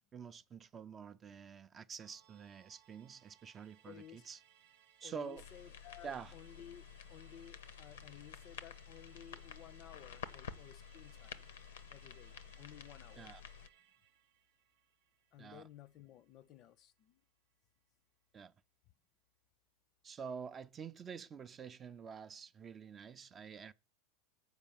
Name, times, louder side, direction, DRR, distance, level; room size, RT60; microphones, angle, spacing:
voice 1, 0.0-4.4 5.0-5.4 6.0-6.3 13.2-13.4 15.4-15.6 18.3-18.5 20.0-23.7, right 6 dB, 25° right, 0.4 m, -48 dB
Musical instrument, 2.0-16.7 17.0-17.1, right 11 dB, 75° right, 0.8 m, -68 dB
voice 2, 3.8-4.3 5.0-11.4 11.9-13.3 15.3-17.2, left 11 dB, 40° left, 0.4 m, -56 dB
sound 1, 5.4-13.7, left 8 dB, 90° left, 0.7 m, -51 dB
7.9 x 4.6 x 7.3 m
supercardioid pair, 130°, 0 cm